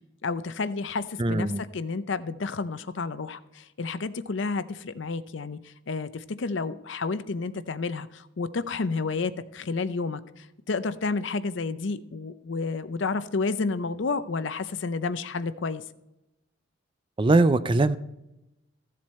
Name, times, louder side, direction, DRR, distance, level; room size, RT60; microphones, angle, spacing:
voice 1, 0.2-15.8, left 4 dB, 65° left, 13 dB, 0.6 m, -30 dB
voice 2, 1.2-1.6 17.2-18.0, right 2 dB, 25° right, 13 dB, 0.4 m, -21 dB
15.0 x 7.6 x 4.2 m, 0.92 s
head